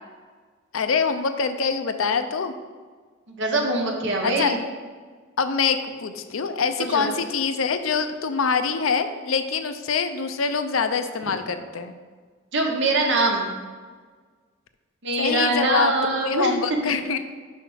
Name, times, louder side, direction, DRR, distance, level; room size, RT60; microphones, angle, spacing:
voice 1, 0.7-2.5 4.2-4.6 5.4-12.0 15.2-15.9 16.2-17.2, left 5 dB, 85° left, 9 dB, 0.6 m, -24 dB
voice 2, 3.4-4.6 6.9-7.1 12.5-13.5 15.0-16.5, right 2 dB, 60° right, 1 dB, 1.3 m, -23 dB
6.3 x 5.8 x 5.7 m, 1.5 s
head